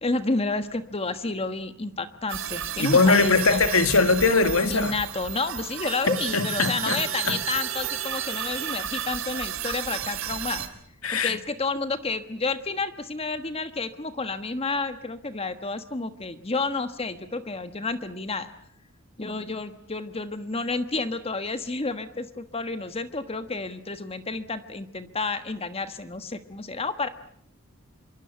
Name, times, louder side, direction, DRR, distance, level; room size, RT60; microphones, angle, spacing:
voice 1, 0.0-3.6 4.7-10.6 11.1-18.5 19.2-27.1, left 3 dB, 30° left, 1.4 m, -30 dB
sound 1, 2.3-10.7, right 9 dB, 70° right, 3.4 m, -32 dB
voice 2, 2.8-4.9 6.1-7.4 11.0-11.4, left 3 dB, 85° left, 2.0 m, -21 dB
26.0 x 24.0 x 8.1 m
head